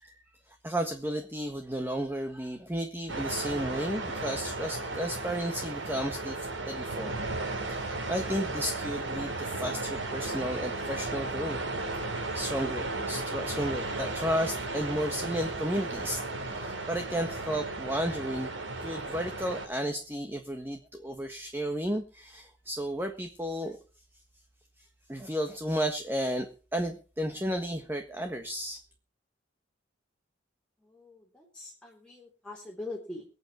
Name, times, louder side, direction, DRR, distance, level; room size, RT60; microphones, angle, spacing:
voice 1, 0.0-7.1 7.6-11.6 12.0-23.8 24.8-26.5 26.7-28.8, equal, 10° right, 5 dB, 1.5 m, -33 dB
sound 1, 3.1-19.7, right 2 dB, 80° right, 4.4 m, -35 dB
voice 2, 30.8-33.3, left 2 dB, 5° left, -1 dB, 3.5 m, -43 dB
23.5 x 8.4 x 4.4 m, 0.37 s
head